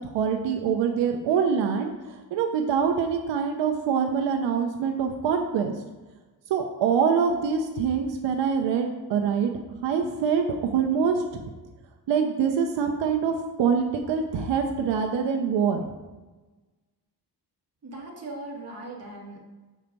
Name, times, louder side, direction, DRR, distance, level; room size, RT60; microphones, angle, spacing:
voice 1, 0.0-1.9 2.3-5.7 6.5-9.5 9.8-10.4 10.7-11.4 12.1-15.8, right 6 dB, 90° right, 3 dB, 0.8 m, -24 dB
voice 2, 17.8-19.4, right 2 dB, 35° right, -3 dB, 1.8 m, -39 dB
6.4 x 4.5 x 5.2 m, 1.2 s
cardioid pair, 130°, 42 cm